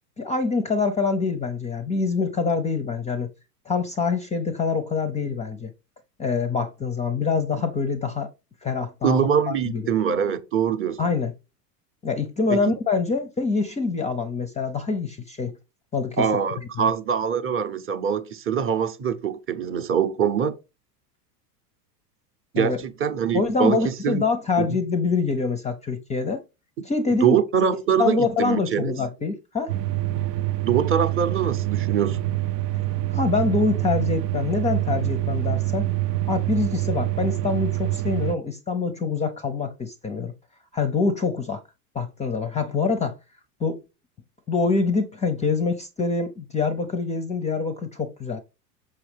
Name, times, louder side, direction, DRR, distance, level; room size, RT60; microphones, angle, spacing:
voice 1, 0.2-3.3 3.7-5.7 6.2-8.3 8.6-9.2 9.7-9.9 11.0-11.3 12.0-15.5 15.9-16.3 16.8-16.9 22.5-22.8 23.3-26.4 26.8-27.4 27.7-29.7 32.7-32.8 33.1-35.9 36.3-40.3 40.7-41.6 41.9-43.2 43.6-43.8 44.5-48.4, left 4 dB, 15° left, 0.5 m, -25 dB
voice 2, 9.0-11.0 12.5-12.8 16.2-20.5 22.5-24.2 24.6-24.8 27.1-28.9 30.6-32.2, right 8 dB, 25° right, 0.7 m, -23 dB
sound 1, 29.7-38.4, right 15 dB, 75° right, 0.7 m, -26 dB
6.2 x 5.6 x 3.3 m
hypercardioid pair, 105°, 49 cm